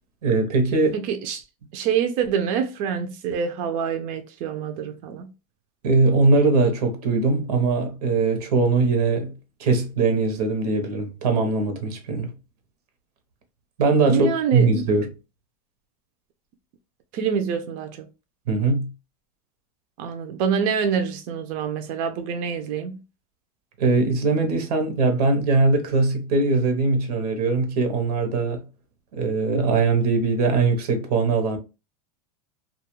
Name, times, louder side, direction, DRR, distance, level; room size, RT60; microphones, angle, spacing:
voice 1, 0.2-1.0 5.8-9.3 9.6-12.3 13.8-15.1 18.5-18.9 23.8-28.6 29.1-31.6, right 3 dB, 90° right, 0.8 m, -21 dB
voice 2, 0.9-1.4 1.7-5.3 14.0-14.7 17.1-18.1 20.0-23.0, right 7 dB, 45° right, 0.4 m, -26 dB
2.3 x 2.1 x 2.9 m
supercardioid pair, 135°, 19 cm